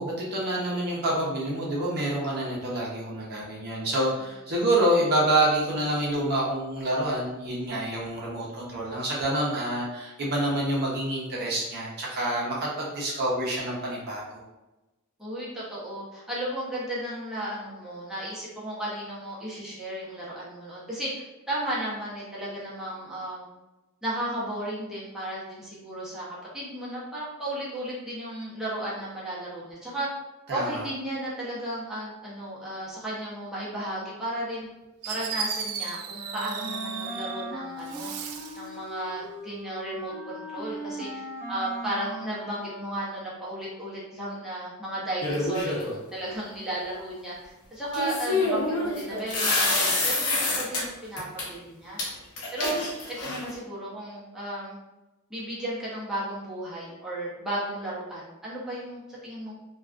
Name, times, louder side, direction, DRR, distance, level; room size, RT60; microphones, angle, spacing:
voice 1, 0.0-14.4 30.5-30.8, right 1 dB, 50° right, -4 dB, 0.6 m, -27 dB
voice 2, 15.2-23.4 24.0-26.3 26.5-30.1 30.5-34.7 35.1-38.1 38.5-52.0 52.5-52.8 53.2-54.8 55.3-59.5, right 1 dB, ahead, -8 dB, 0.6 m, -34 dB
Fireworks, 34.6-34.7 35.0-37.5 37.8-38.7, right 6 dB, 85° right, 0.3 m, -35 dB
Wind instrument woodwind instrument, 36.2-43.3, right 1 dB, 50° left, 0.5 m, -38 dB
sound 1, 45.2-46.0 47.9-50.8 51.2-51.4 52.0-52.1 52.4-53.5, left 2 dB, 90° left, 0.8 m, -26 dB
2.3 x 2.2 x 2.4 m, 1.0 s
head